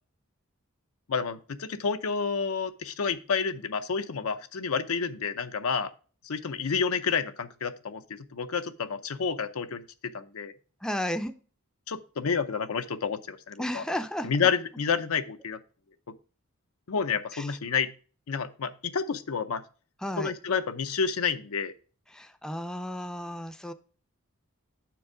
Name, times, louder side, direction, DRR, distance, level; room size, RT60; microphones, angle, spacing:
voice 1, 1.1-5.9 6.2-10.5 11.9-13.8 14.2-15.6 16.9-17.9 18.3-19.6 20.2-21.7, left 6 dB, 85° left, 0.6 m, -29 dB
voice 2, 10.8-11.3 13.6-14.3 17.3-17.6 20.0-20.3 22.1-23.7, left 1 dB, 5° left, 0.4 m, -33 dB
7.0 x 4.7 x 4.8 m
head